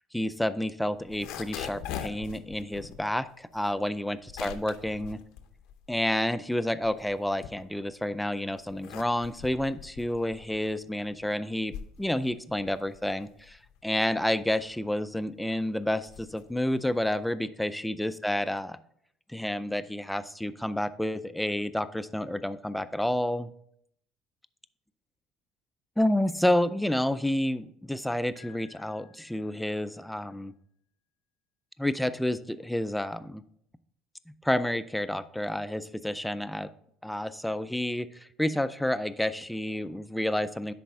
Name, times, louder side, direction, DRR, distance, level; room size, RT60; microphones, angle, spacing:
voice 1, 0.1-5.2 5.9-18.8 19.3-23.5 26.0-30.5 31.8-33.4 34.4-36.7 37.0-40.7, left 1 dB, 5° left, 13 dB, 0.3 m, -30 dB
sound 1, 1.0-6.3 6.6-8.1 8.5-17.3, left 9 dB, 80° left, 0.7 m, -43 dB
Piano, 28.4-30.3, left 6 dB, 60° right, 2.2 m, -59 dB
10.0 x 4.1 x 3.5 m, 0.70 s
cardioid pair, 130°, 0 cm